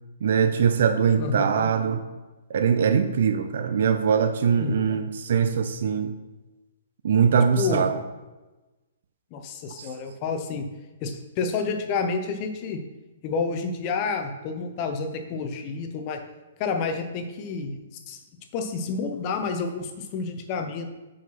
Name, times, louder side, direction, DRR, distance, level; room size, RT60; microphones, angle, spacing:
voice 1, 0.2-2.0 2.5-6.2 7.0-8.0 9.8-9.9, right 7 dB, 60° right, 8 dB, 0.6 m, -22 dB
voice 2, 1.2-1.7 4.6-4.8 7.6-7.8 9.3-10.7 11.0-12.8 13.2-16.2 16.6-17.8 18.1-18.2 18.5-20.8, left 4 dB, 30° left, 5 dB, 0.8 m, -29 dB
5.7 x 5.1 x 6.0 m, 1.1 s
hypercardioid pair, 165°, 0 cm